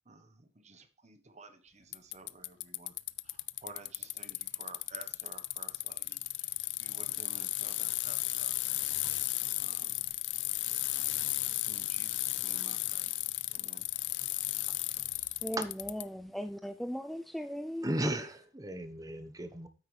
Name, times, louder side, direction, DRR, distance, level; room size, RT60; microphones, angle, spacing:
voice 1, 0.1-2.9 3.2-6.5 6.8-8.5 9.2-9.3 9.6-10.0 11.7-13.1 13.5-13.9, right 3 dB, 40° right, 1.1 m, -53 dB
Bicycle, 1.9-16.0, left 18 dB, 85° left, 0.4 m, -34 dB
voice 2, 15.4-17.9, equal, ahead, 0.4 m, -38 dB
voice 3, 17.8-19.7, right 1 dB, 20° right, 1.1 m, -35 dB
9.4 x 8.2 x 3.3 m
head